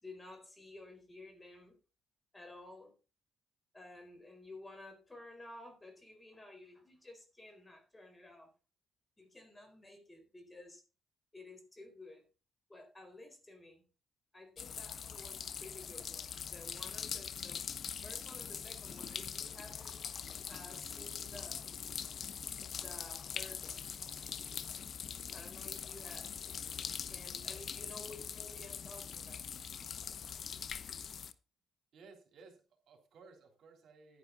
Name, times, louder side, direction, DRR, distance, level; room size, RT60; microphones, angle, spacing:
voice 1, 0.0-1.8 2.3-2.9 3.7-8.5 9.2-10.8 11.3-12.3 12.7-13.8 14.3-17.7 18.0-20.0 20.5-21.9 22.4-23.9 25.3-26.4 27.1-29.4, left 2 dB, 20° left, 5 dB, 4.3 m, -53 dB
sound 1, 14.6-31.3, left 7 dB, 55° left, 0.8 m, -43 dB
voice 2, 31.9-34.2, right 4 dB, 65° right, 3 dB, 3.4 m, -58 dB
10.5 x 10.5 x 4.0 m, 0.32 s
cardioid pair, 90°, 0 cm